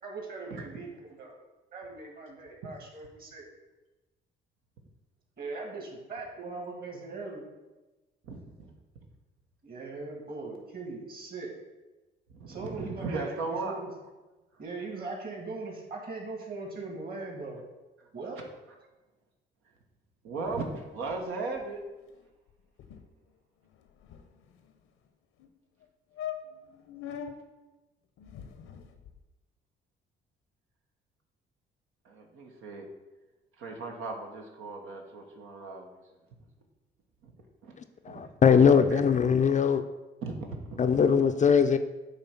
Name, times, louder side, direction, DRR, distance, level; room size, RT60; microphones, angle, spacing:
voice 1, 0.0-1.3 1.7-3.4 5.4-7.4 9.6-11.5 12.5-13.3 13.6-13.9 14.6-17.6 18.1-18.4, right 3 dB, 45° right, 0 dB, 2.3 m, -40 dB
voice 2, 12.3-13.8 20.2-21.8 32.0-32.9 33.6-36.0 37.2-37.3 37.6-37.7 38.1-38.3 38.9-39.0 40.2-40.8, right 3 dB, 80° right, 1 dB, 1.1 m, -37 dB
sound 1, 20.4-21.3 21.6-21.7 22.0-22.2 22.5-22.6 22.8-23.1 23.7-24.7 25.4-25.5 25.8-25.9 26.2-27.3 28.2-29.2, left 9 dB, 75° left, 0.8 m, -43 dB
voice 3, 38.0-39.8 40.8-41.8, left 6 dB, 35° left, 9 dB, 0.5 m, -21 dB
8.2 x 3.2 x 5.8 m, 1.1 s
supercardioid pair, 75°, 21 cm